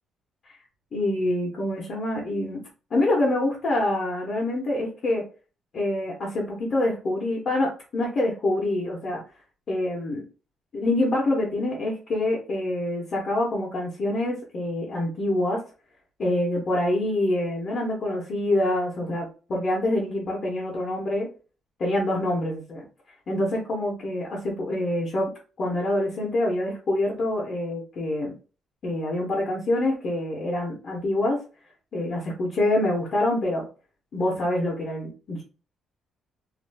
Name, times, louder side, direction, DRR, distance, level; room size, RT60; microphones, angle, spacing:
voice 1, 0.9-2.6 2.9-5.2 5.7-9.2 9.7-10.2 10.7-15.6 16.2-21.3 21.8-22.8 23.3-25.3 25.6-28.3 28.8-31.4 31.9-33.6 34.1-35.4, left 1 dB, 35° left, -3 dB, 0.7 m, -26 dB
2.4 x 2.3 x 3.3 m, 0.35 s
cardioid pair, 175°, 0 cm